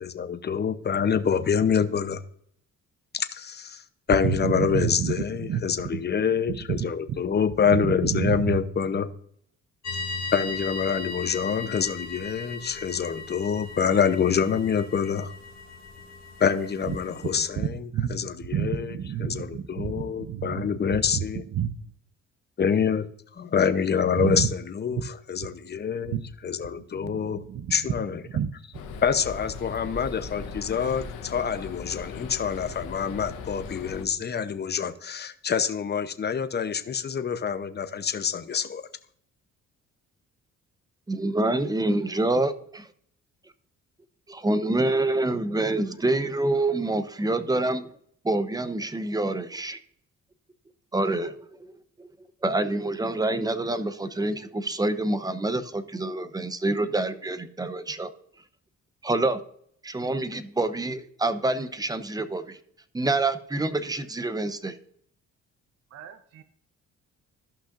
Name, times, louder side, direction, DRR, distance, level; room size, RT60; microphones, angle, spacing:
voice 1, 0.0-2.2 3.1-3.8 4.1-9.1 10.3-15.3 16.4-21.4 22.6-23.1 23.4-26.2 26.4-27.4 27.7-28.2 29.0-38.8, left 7 dB, 35° left, 10 dB, 0.8 m, -26 dB
voice 2, 4.2-6.0 6.5-7.2 7.7-8.6 17.3-20.7 21.0-21.7 24.2-24.5 24.9-25.0 25.4-25.5 26.1-26.3 26.9-27.8 28.3-28.6 65.9-66.4, right 9 dB, 55° right, 10 dB, 0.6 m, -30 dB
sound 1, 9.8-17.5, left 4 dB, 65° left, 1.7 m, -38 dB
sound 2, 28.7-34.0, left 5 dB, 90° left, 1.0 m, -38 dB
voice 3, 41.1-42.9 44.3-47.9 48.2-49.8 50.9-51.3 52.0-52.1 52.4-58.1 59.0-59.4 59.8-62.6 62.9-64.8, right 2 dB, 10° right, 12 dB, 0.8 m, -26 dB
14.0 x 5.7 x 2.5 m, 0.65 s
cardioid pair, 90°, 30 cm